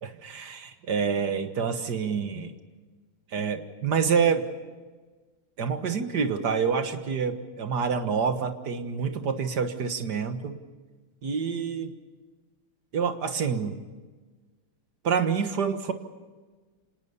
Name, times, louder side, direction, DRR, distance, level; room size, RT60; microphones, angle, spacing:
voice 1, 0.0-2.5 3.3-4.4 5.6-10.6 11.2-12.0 12.9-13.8 15.0-15.9, right 6 dB, 55° right, 8 dB, 2.0 m, -27 dB
26.0 x 19.5 x 7.0 m, 1.3 s
omnidirectional pair, 2.3 m